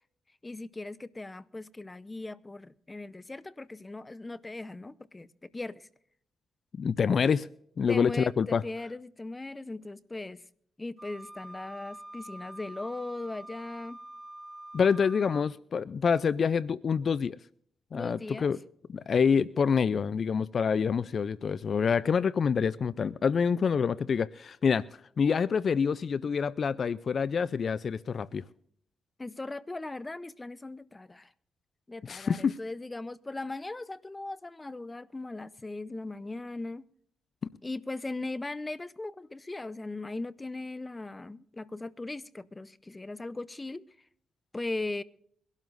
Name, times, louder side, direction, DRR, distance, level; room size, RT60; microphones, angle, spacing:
voice 1, 0.4-5.9 7.9-10.4 10.8-14.0 17.9-18.5 29.2-31.3 31.9-36.9 37.6-43.8 44.5-45.0, left 2 dB, 25° left, 0.7 m, -38 dB
voice 2, 6.8-7.5 7.8-8.6 14.7-17.4 17.9-18.6 18.9-24.8 25.2-28.4 32.0-32.6, left 6 dB, 55° left, 0.4 m, -27 dB
Wind instrument woodwind instrument, 11.0-15.5, right 1 dB, 10° right, 2.3 m, -46 dB
23.0 x 12.5 x 2.6 m
cardioid pair, 65°, 0 cm